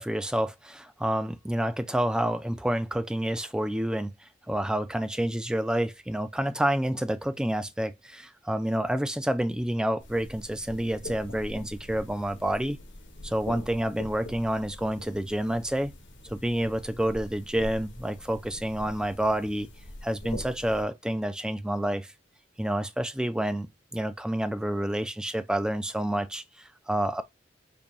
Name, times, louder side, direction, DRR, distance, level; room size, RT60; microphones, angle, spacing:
voice 1, 0.0-4.1 4.5-12.8 13.2-15.9 16.2-19.7 20.0-22.1 22.6-27.2, right 1 dB, 5° right, 0.3 m, -29 dB
sound 1, 10.0-20.8, left 1 dB, 65° left, 1.0 m, -44 dB
5.2 x 2.2 x 2.9 m
head